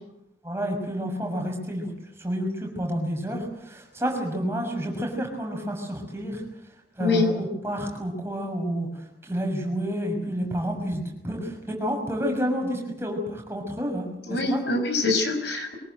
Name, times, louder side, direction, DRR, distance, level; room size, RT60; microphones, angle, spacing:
voice 1, 0.4-1.9 2.2-6.4 7.0-8.9 9.2-14.6, equal, 15° right, 1 dB, 6.3 m, -29 dB
voice 2, 14.3-15.7, left 3 dB, 85° left, 5 dB, 5.9 m, -24 dB
24.5 x 21.0 x 8.0 m, 0.83 s
head